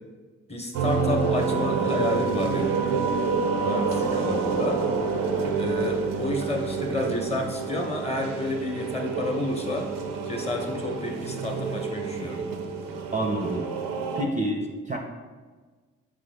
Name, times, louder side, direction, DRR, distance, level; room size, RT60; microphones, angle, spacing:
voice 1, 0.5-2.8 3.6-4.8 5.5-9.9 10.3-12.5, left 1 dB, 20° left, 2 dB, 0.9 m, -30 dB
sound 1, 0.7-14.2, right 5 dB, 70° right, 0.6 m, -28 dB
voice 2, 13.1-13.7 14.1-15.0, right 1 dB, 20° right, 1 dB, 0.5 m, -28 dB
3.9 x 3.6 x 3.3 m, 1.4 s
hypercardioid pair, 40°, 34 cm